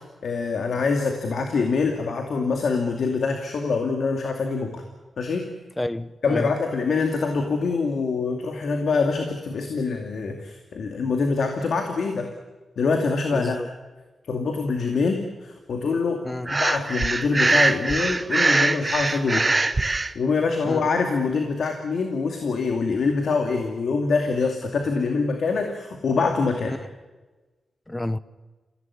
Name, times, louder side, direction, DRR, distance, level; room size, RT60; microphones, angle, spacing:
voice 1, 0.0-4.8 5.2-5.5 6.2-12.3 12.8-13.6 14.3-16.2 16.5-26.8, left 4 dB, 75° left, 2.5 m, -25 dB
voice 2, 5.8-6.5 13.3-13.7 16.2-16.5 20.6-20.8 27.9-28.2, left 1 dB, 15° left, 0.9 m, -29 dB
Breathing, 16.4-20.1, right 2 dB, 25° right, 0.9 m, -22 dB
27.5 x 16.5 x 9.7 m
cardioid pair, 90°, 0 cm